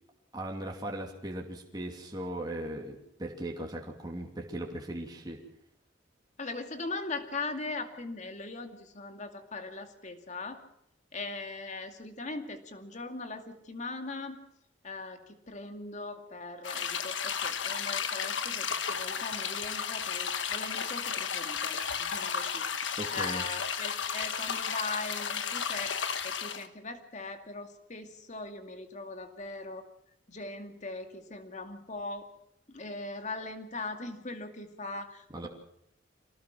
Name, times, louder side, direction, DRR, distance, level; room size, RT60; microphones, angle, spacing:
voice 1, 0.3-5.4 23.0-23.4 35.3-35.5, right 1 dB, 20° right, 0 dB, 2.7 m, -38 dB
voice 2, 6.4-10.6 11.1-14.4 14.8-26.0 26.2-29.9 30.3-32.3 32.7-35.5, left 3 dB, 40° left, 6 dB, 2.3 m, -40 dB
sound 1, 16.6-26.7, left 7 dB, 75° left, 1.4 m, -33 dB
25.5 x 18.5 x 6.1 m, 0.78 s
head